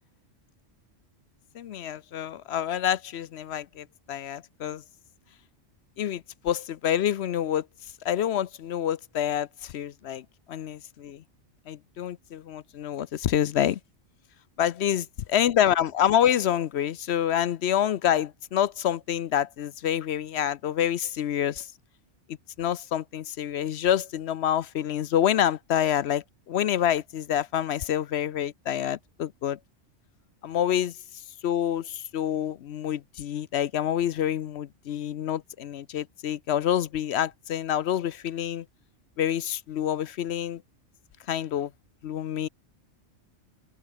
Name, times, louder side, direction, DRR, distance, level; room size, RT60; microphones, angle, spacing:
voice 1, 1.6-4.8 6.0-7.6 8.0-10.2 10.5-11.2 11.7-13.8 14.6-21.7 22.6-29.6 30.4-30.9 31.4-38.6 39.2-40.6 41.3-41.7 42.0-42.5, left 10 dB, 65° left, 0.8 m, -27 dB
omnidirectional pair, 1.3 m